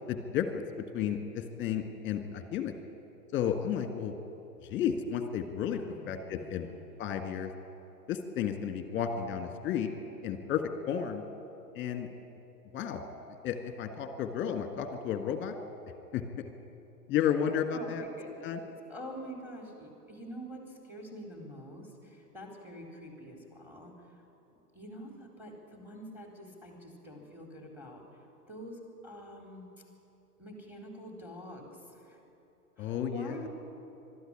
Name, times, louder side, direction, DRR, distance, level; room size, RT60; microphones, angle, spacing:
voice 1, 0.1-0.6 0.9-2.8 3.3-4.1 4.6-5.8 6.1-6.7 7.0-7.5 8.1-9.9 10.2-11.2 11.7-12.1 12.7-13.0 13.4-15.6 16.1-16.4 17.1-18.6 32.8-33.4, left 8 dB, 25° left, 8 dB, 1.7 m, -32 dB
voice 2, 5.8-6.9 17.7-24.2 24.7-28.0 28.5-29.7 30.4-32.2 32.8-33.5, equal, 5° right, 1 dB, 4.0 m, -46 dB
22.5 x 13.0 x 9.8 m, 3.0 s
figure-of-eight pair, 105°, 47 cm